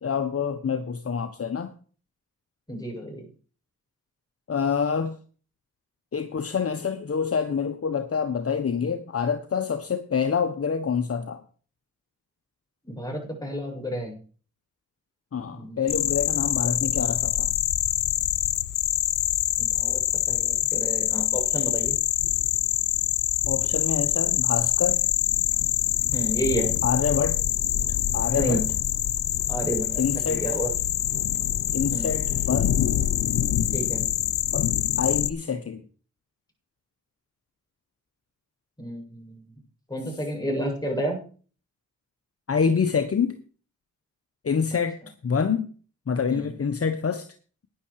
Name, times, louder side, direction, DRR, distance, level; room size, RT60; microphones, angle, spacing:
voice 1, 0.0-1.7 4.5-5.2 6.1-11.4 15.3-17.5 23.5-25.0 26.8-27.4 28.1-28.6 30.0-30.4 31.7-32.8 34.5-34.7 35.0-35.8 42.5-43.4 44.4-45.0 45.2-45.7 46.1-47.3, left 6 dB, 50° left, 8 dB, 1.3 m, -26 dB
voice 2, 2.7-3.3 12.8-14.2 15.5-15.8 19.6-22.0 26.1-26.7 28.3-28.6 29.5-30.0 30.3-30.7 31.9-32.1 33.7-34.1 38.8-39.4 39.9-41.2 46.3-46.5, equal, 10° left, 1 dB, 8.0 m, -30 dB
sound 1, 15.9-35.3, left 12 dB, 85° left, 0.8 m, -25 dB
11.5 x 10.0 x 4.9 m, 0.40 s
cardioid pair, 55°, 31 cm